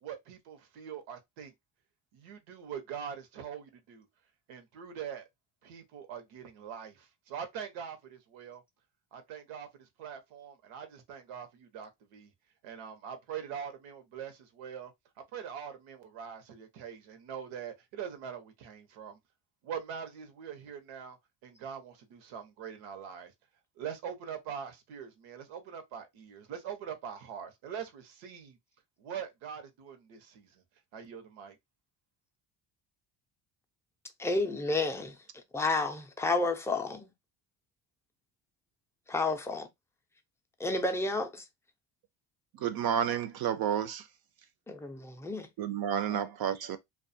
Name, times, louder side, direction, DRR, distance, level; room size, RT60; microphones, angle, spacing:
voice 1, 0.0-1.5 2.1-4.1 4.5-5.2 5.6-8.6 9.1-12.3 12.6-14.9 15.3-19.2 19.6-21.2 21.4-23.3 23.8-28.6 29.0-30.6 30.9-31.6, right 8 dB, 90° right, 0.8 m, -43 dB
voice 2, 34.2-37.1 39.1-39.7 40.6-41.5 44.7-45.5 46.1-46.2, left 2 dB, 5° left, 0.3 m, -31 dB
voice 3, 42.5-44.1 45.6-46.8, right 9 dB, 55° right, 0.5 m, -31 dB
2.4 x 2.3 x 2.6 m
cardioid pair, 100°, 46 cm